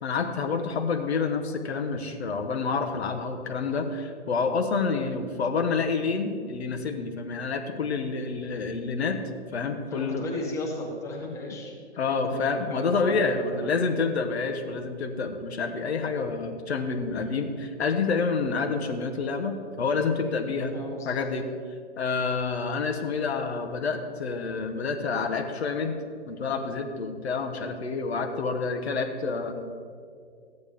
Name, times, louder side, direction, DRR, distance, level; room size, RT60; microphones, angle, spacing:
voice 1, 0.0-9.2 9.5-10.3 12.0-20.8 21.0-21.5 22.0-26.0 26.3-29.5, left 4 dB, 65° left, 5 dB, 1.2 m, -28 dB
voice 2, 9.9-11.7 12.2-13.7 17.1-17.3 20.6-21.2, left 2 dB, 10° left, -3 dB, 1.2 m, -35 dB
14.0 x 9.4 x 3.6 m, 2.2 s
hypercardioid pair, 150°, 34 cm